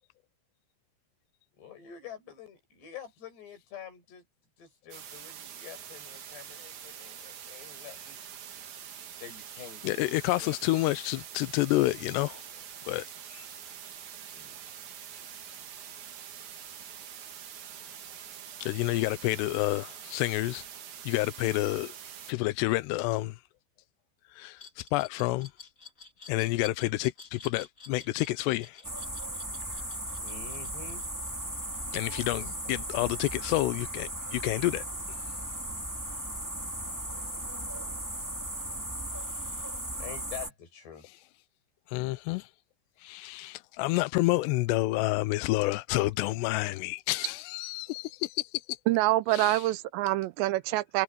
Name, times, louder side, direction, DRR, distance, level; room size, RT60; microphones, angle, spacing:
voice 1, 1.6-4.2 4.6-8.2 9.2-10.6 14.3-14.6 30.2-31.1 40.0-41.1, left 7 dB, 65° left, 8.9 m, -46 dB
sound 1, 4.9-22.3, right 9 dB, 55° right, 2.4 m, -45 dB
voice 2, 9.8-12.4 12.8-13.5 18.6-20.7 21.0-21.9 22.3-23.4 24.3-25.5 26.3-28.8 31.9-34.8 41.9-42.5 43.0-48.8 49.3-49.6, left 19 dB, 85° left, 2.5 m, -29 dB
Glass, 24.6-31.4, left 5 dB, 20° left, 2.6 m, -49 dB
sound 2, 28.8-40.5, right 1 dB, 5° right, 1.4 m, -37 dB
voice 3, 48.9-51.0, right 17 dB, 80° right, 2.8 m, -26 dB
omnidirectional pair, 5.3 m